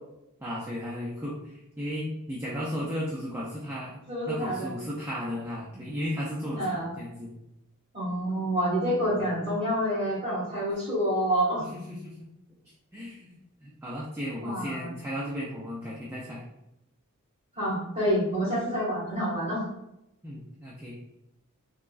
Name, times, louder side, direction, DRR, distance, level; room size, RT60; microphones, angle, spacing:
voice 1, 0.4-4.0 4.3-7.3 9.1-9.2 11.6-12.3 12.9-13.3 13.6-16.4 20.2-21.0, equal, 10° right, -6 dB, 0.3 m, -35 dB
voice 2, 4.1-4.7 6.6-6.9 7.9-11.6 14.4-14.9 17.5-19.6, equal, 25° right, -8 dB, 1.5 m, -28 dB
3.5 x 2.0 x 2.3 m, 0.86 s
head